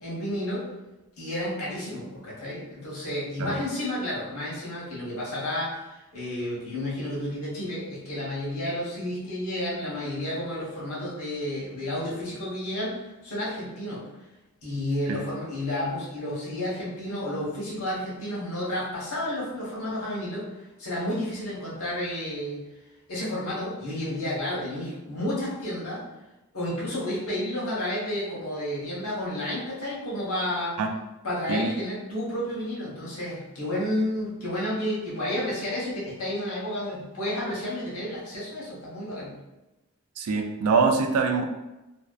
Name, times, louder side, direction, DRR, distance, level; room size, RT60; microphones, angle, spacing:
voice 1, 0.0-0.6 1.2-14.0 14.6-20.5 20.8-22.6 23.1-26.0 26.5-30.8 31.2-39.3, left 1 dB, 90° left, -6 dB, 0.9 m, -31 dB
voice 2, 40.2-41.4, right 4 dB, 90° right, 5 dB, 0.3 m, -24 dB
2.6 x 2.1 x 2.2 m, 1.0 s
head